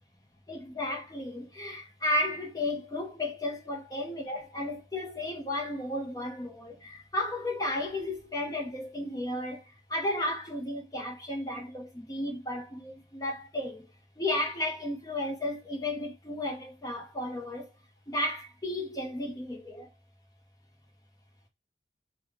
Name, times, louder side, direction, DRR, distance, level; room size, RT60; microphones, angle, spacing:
voice 1, 0.5-13.9 14.2-17.7 18.1-19.9, left 1 dB, 20° left, 0.6 m, -33 dB
3.5 x 2.1 x 3.1 m
head